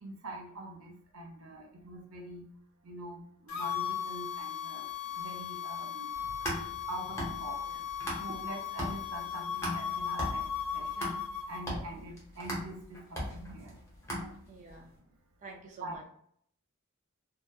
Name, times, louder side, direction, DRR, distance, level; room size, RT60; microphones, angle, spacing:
voice 1, 0.0-2.4 2.8-4.9 5.1-6.1 6.9-7.6 8.2-10.5 10.7-11.1 11.5-13.8 14.2-14.3 15.8-16.1, right 1 dB, 85° right, 0 dB, 0.6 m, -44 dB
sound 1, 3.5-11.6, left 9 dB, 70° left, 0.4 m, -37 dB
sound 2, 6.1-8.5 8.8-14.7, equal, 15° left, 0.8 m, -38 dB
voice 2, 14.5-14.9 15.4-16.0, right 3 dB, 35° right, 0 dB, 0.3 m, -49 dB
2.7 x 2.1 x 2.3 m, 0.66 s
head